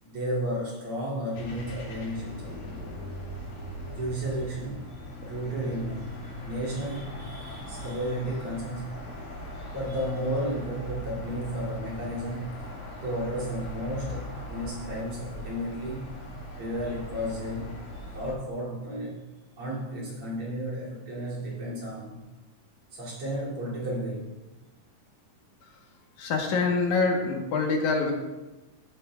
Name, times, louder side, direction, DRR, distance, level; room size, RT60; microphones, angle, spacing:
voice 1, 0.0-2.5 3.9-4.8 5.2-6.2 6.4-9.0 9.7-12.6 13.0-16.2 16.6-17.8 18.1-19.2 19.6-22.2 22.9-24.3, equal, 45° right, -7 dB, 3.4 m, -33 dB
sound 1, 1.3-18.3, left 1 dB, 90° left, 3.7 m, -40 dB
voice 2, 26.2-28.1, left 4 dB, 70° left, 1 dB, 2.4 m, -25 dB
14.5 x 8.8 x 2.3 m, 1.1 s
omnidirectional pair, 3.8 m